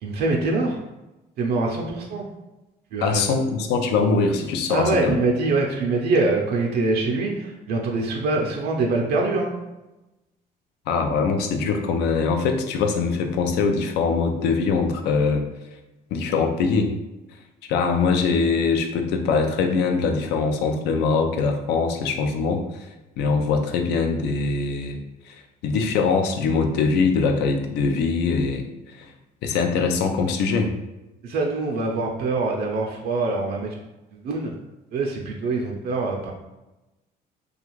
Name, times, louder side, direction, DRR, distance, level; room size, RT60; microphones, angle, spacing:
voice 1, 0.0-0.8 1.4-2.3 2.9-3.2 4.7-9.5 31.2-33.8 34.1-34.5 34.9-36.3, right 3 dB, 70° right, 0 dB, 0.5 m, -24 dB
voice 2, 3.0-5.1 10.9-15.5 16.1-16.9 17.7-22.9 23.2-25.0 25.3-28.7 28.9-29.1 29.4-30.7, left 4 dB, 80° left, 5 dB, 0.4 m, -22 dB
2.4 x 2.3 x 3.0 m, 1.0 s
cardioid pair, 110°, 17 cm